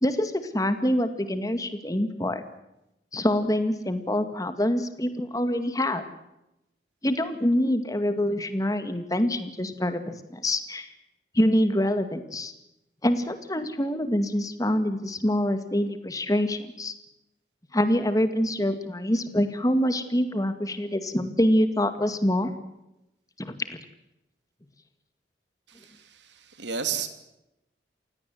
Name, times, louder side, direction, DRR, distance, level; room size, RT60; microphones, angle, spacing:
voice 1, 0.0-2.4 3.1-6.0 7.0-10.9 11.3-12.5 13.0-16.9 17.7-22.5 23.4-23.8, left 1 dB, 20° left, 9 dB, 2.1 m, -25 dB
voice 2, 25.7-27.1, right 7 dB, 85° right, 9 dB, 2.9 m, -33 dB
28.5 x 17.5 x 7.9 m, 0.89 s
head